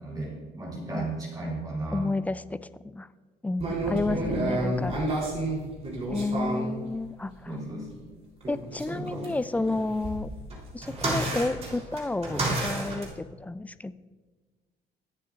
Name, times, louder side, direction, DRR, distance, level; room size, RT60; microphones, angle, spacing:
voice 1, 0.0-2.0 3.8-4.5 7.5-7.9 8.9-9.2, right 1 dB, 25° right, -4 dB, 3.7 m, -35 dB
voice 2, 1.9-2.6 2.9-3.1 3.4-5.0 6.1-7.6 8.5-10.3 10.7-13.9, left 2 dB, 10° left, 15 dB, 0.3 m, -31 dB
sound 1, 3.6-6.7 8.4-13.0, right 2 dB, 40° right, 3.4 m, -31 dB
22.5 x 7.5 x 2.5 m, 1.4 s
cardioid pair, 110°, 17 cm